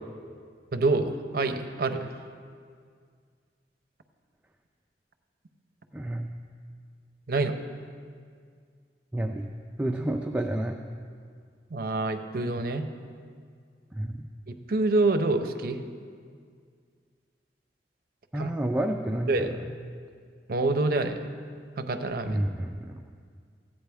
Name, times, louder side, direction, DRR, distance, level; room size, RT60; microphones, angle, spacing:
voice 1, 0.7-2.1 7.3-7.6 11.7-12.8 14.5-15.8 18.3-18.5 19.3-19.5 20.5-21.3 21.8-22.4, right 2 dB, 55° right, 7 dB, 0.6 m, -26 dB
voice 2, 5.9-6.3 9.1-9.5 9.8-10.8 13.9-14.3 18.3-19.7 22.3-23.0, right 1 dB, 10° right, 2 dB, 0.3 m, -30 dB
14.5 x 8.8 x 3.4 m, 2.1 s
head